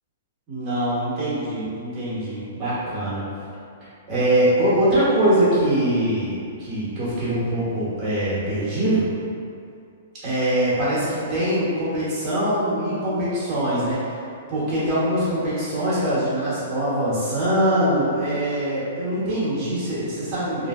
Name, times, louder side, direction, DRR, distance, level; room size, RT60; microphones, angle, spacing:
voice 1, 0.5-3.2 4.1-9.1 10.2-14.2 14.5-20.7, right 1 dB, 25° right, -11 dB, 1.3 m, -23 dB
3.1 x 2.7 x 2.5 m, 2.5 s
hypercardioid pair, 160°, 0 cm